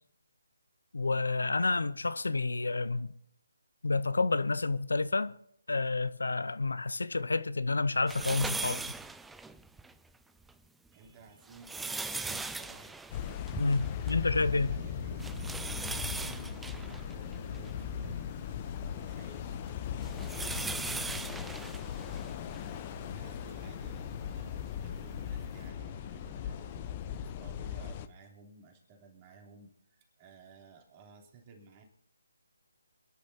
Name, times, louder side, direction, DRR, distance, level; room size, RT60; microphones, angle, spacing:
voice 1, 0.9-3.1 3.8-5.3 5.7-8.9 13.6-14.8, left 3 dB, 75° left, 0.6 m, -29 dB
sound 1, 8.1-9.9 10.4-10.5 11.3-14.3 14.6-14.7 15.2-18.2 18.8-22.7 23.4-23.5 24.8-24.9, right 3 dB, 5° right, 0.4 m, -39 dB
voice 2, 10.9-13.0 13.8-18.5 18.8-31.8, right 3 dB, 25° right, 3.2 m, -56 dB
sound 2, 13.1-28.1, left 9 dB, 25° left, 0.7 m, -39 dB
sound 3, 14.3-26.9, right 3 dB, 80° right, 2.6 m, -51 dB
28.0 x 10.5 x 2.8 m
figure-of-eight pair, 150°, 0 cm